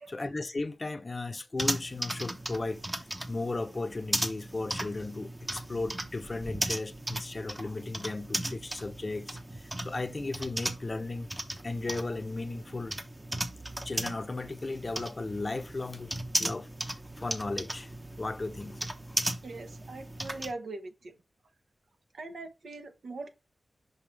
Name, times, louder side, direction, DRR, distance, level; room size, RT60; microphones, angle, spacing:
voice 1, 0.1-9.3 9.8-11.3 11.6-13.0 13.8-16.7 17.2-17.9 18.2-18.8 19.1-19.2, left 3 dB, 35° left, 0.7 m, -35 dB
sound 1, 1.6-20.5, right 1 dB, 20° right, 0.9 m, -36 dB
voice 2, 19.4-21.1 22.1-23.3, right 3 dB, 80° right, 1.1 m, -41 dB
5.7 x 5.4 x 3.2 m
wide cardioid pair, 100°, 0 cm